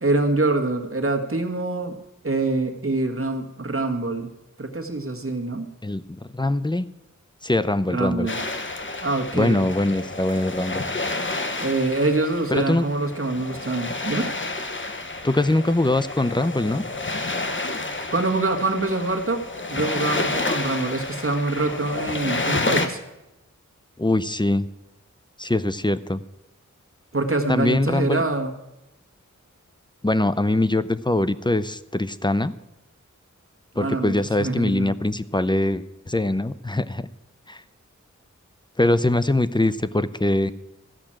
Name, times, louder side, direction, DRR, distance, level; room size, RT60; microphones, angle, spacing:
voice 1, 0.0-2.0 2.2-4.3 4.6-5.7 7.9-8.4 9.0-9.7 11.6-14.3 18.1-19.4 19.7-23.0 27.1-28.5 33.8-34.1 34.4-34.9, right 2 dB, 45° right, 3 dB, 1.6 m, -25 dB
voice 2, 5.8-6.9 7.4-8.3 9.3-10.8 12.5-12.8 15.2-16.8 24.0-24.7 25.4-26.2 27.5-28.2 30.0-32.5 33.8-37.1 37.5-37.6 38.8-40.5, left 1 dB, 15° left, 14 dB, 0.6 m, -22 dB
sound 1, 8.3-22.9, left 2 dB, 40° left, 1.2 m, -30 dB
14.0 x 6.0 x 8.8 m, 0.94 s
wide cardioid pair, 40°, 31 cm